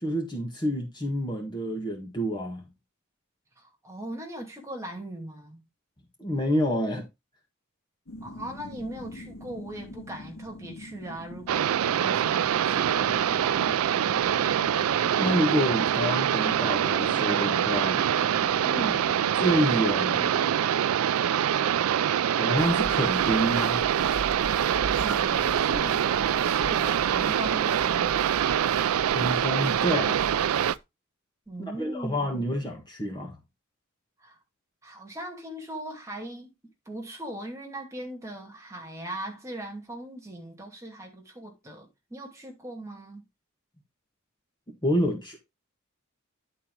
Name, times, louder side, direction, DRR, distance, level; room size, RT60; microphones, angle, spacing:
voice 1, 0.0-2.6 6.2-7.0 15.2-18.0 19.4-20.3 22.4-23.8 29.1-30.2 31.8-33.4 44.8-45.4, equal, 20° left, 1.6 m, -28 dB
voice 2, 3.6-5.6 8.2-13.7 18.6-19.3 25.0-28.5 31.5-32.5 34.2-34.4 34.8-36.5 36.9-43.2, right 1 dB, 15° right, 2.5 m, -39 dB
sound 1, 8.1-20.5, left 2 dB, 90° left, 2.3 m, -44 dB
sound 2, 11.5-30.8, right 9 dB, 80° right, 0.4 m, -25 dB
sound 3, 22.6-30.8, right 3 dB, 60° right, 1.0 m, -40 dB
11.0 x 4.5 x 3.8 m
head